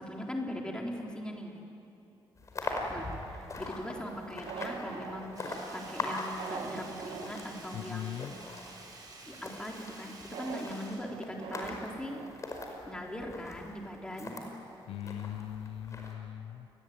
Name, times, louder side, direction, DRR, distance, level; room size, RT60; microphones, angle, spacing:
voice 1, 0.0-1.5 2.9-5.3 5.7-8.3 9.3-12.2 12.9-14.5, left 1 dB, 10° left, 0 dB, 3.9 m, -40 dB
sound 1, 2.4-14.5 15.0-16.1, left 2 dB, 35° left, 5.1 m, -42 dB
sound 2, 3.9-8.6 8.9-9.0 10.3-13.3 13.7-13.8 14.0-14.1, right 6 dB, 80° right, 2.5 m, -45 dB
Sink (filling or washing), 5.3-11.9 12.2-12.3, right 3 dB, 45° right, 6.2 m, -51 dB
voice 2, 7.7-8.3 14.8-16.7, left 10 dB, 85° left, 11 dB, 1.0 m, -39 dB
28.5 x 21.5 x 9.5 m, 2.7 s
cardioid pair, 130°, 9 cm